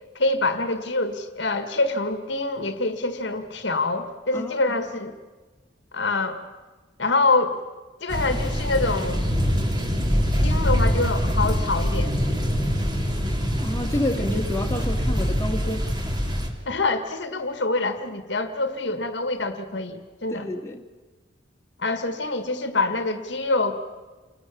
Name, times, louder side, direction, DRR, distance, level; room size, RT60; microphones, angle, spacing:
voice 1, 0.2-5.2 5.9-6.4 7.0-7.6 8.0-9.3 10.4-12.1 16.7-20.5 21.8-24.0, left 3 dB, 65° left, 9 dB, 1.8 m, -25 dB
voice 2, 4.3-4.8 13.6-16.2 20.3-20.8, left 1 dB, 15° left, 1 dB, 2.0 m, -29 dB
sound 1, 8.1-16.5, equal, 20° right, 2.8 m, -24 dB
28.5 x 20.0 x 7.4 m, 1.3 s
head